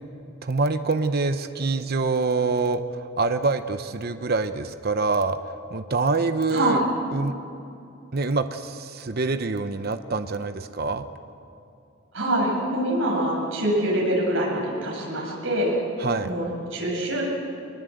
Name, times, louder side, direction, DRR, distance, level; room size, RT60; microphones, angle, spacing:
voice 1, 0.4-6.8 7.1-7.3 8.1-11.0 16.0-16.3, right 3 dB, 50° right, 9 dB, 0.8 m, -25 dB
voice 2, 12.1-15.7 16.2-17.3, right 1 dB, 70° right, -2 dB, 7.7 m, -25 dB
24.0 x 21.0 x 7.9 m, 2.6 s
head